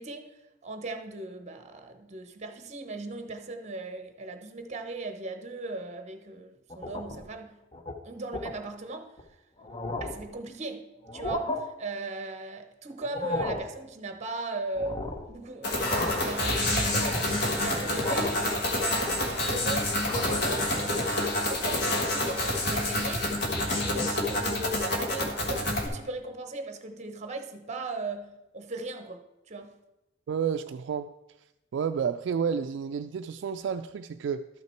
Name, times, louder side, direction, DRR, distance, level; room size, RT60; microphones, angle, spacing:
voice 1, 0.0-7.6 8.0-9.2 10.0-19.2 19.5-23.3 23.7-29.8, right 3 dB, 40° right, 0.9 m, -38 dB
sound 1, 6.7-7.3 7.7-7.9 8.3-8.6 9.2-9.3 9.6-10.3 11.0-11.6 13.0-13.7 14.8-15.3 15.7-16.4 16.8-17.4 18.0-18.5 18.8-19.5 19.9-20.5, left 2 dB, 30° left, 0.8 m, -34 dB
sound 2, 15.6-25.9, left 1 dB, 60° left, 1.6 m, -28 dB
voice 2, 30.3-31.1 31.7-34.5, right 7 dB, 70° right, 0.3 m, -30 dB
12.5 x 5.8 x 4.4 m
head